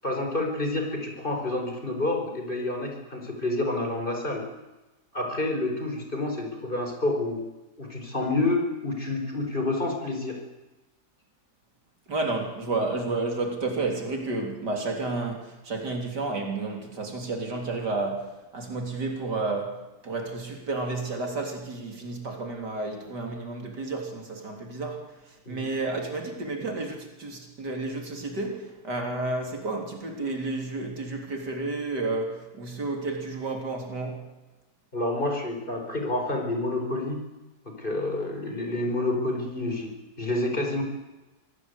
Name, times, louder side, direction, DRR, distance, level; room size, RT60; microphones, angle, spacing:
voice 1, 0.0-4.4 5.1-7.4 7.8-10.4 25.5-25.6 34.9-37.2 37.6-40.8, left 2 dB, 30° left, 2 dB, 5.0 m, -28 dB
voice 2, 12.1-25.1 25.5-34.3, right 3 dB, 85° right, 3 dB, 4.3 m, -31 dB
25.5 x 17.0 x 8.3 m, 1.1 s
omnidirectional pair, 1.8 m